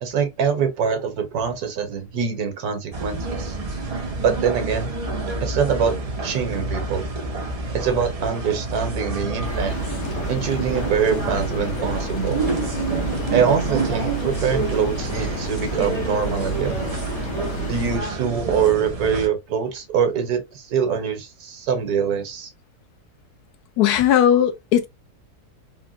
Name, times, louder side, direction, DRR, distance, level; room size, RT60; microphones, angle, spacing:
voice 1, 0.0-3.6 4.2-4.9 5.4-6.0 6.2-7.0 7.7-9.7 10.3-12.4 13.3-16.8 17.7-22.5, right 7 dB, 75° right, 1.4 m, -24 dB
sound 1, 2.9-19.3, right 3 dB, 60° right, 0.4 m, -28 dB
sound 2, 9.4-18.0, equal, 60° left, 0.9 m, -30 dB
voice 2, 23.8-24.9, left 10 dB, 80° left, 1.1 m, -17 dB
3.8 x 2.1 x 2.4 m
omnidirectional pair, 1.7 m